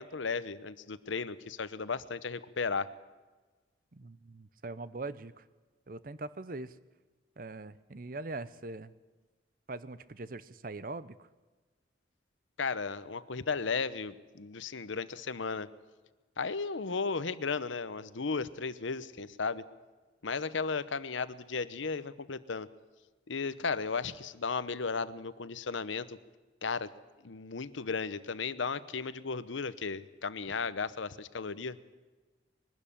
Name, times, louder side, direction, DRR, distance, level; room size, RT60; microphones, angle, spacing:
voice 1, 0.0-2.9 12.6-15.7 16.4-19.6 20.2-22.7 23.3-26.2 26.6-26.9 27.2-31.8, left 4 dB, 85° left, 15 dB, 0.8 m, -35 dB
voice 2, 3.9-5.5 5.9-6.8 7.4-8.9 9.7-11.3, right 2 dB, 45° right, 16 dB, 0.7 m, -42 dB
21.5 x 12.5 x 10.0 m, 1.3 s
head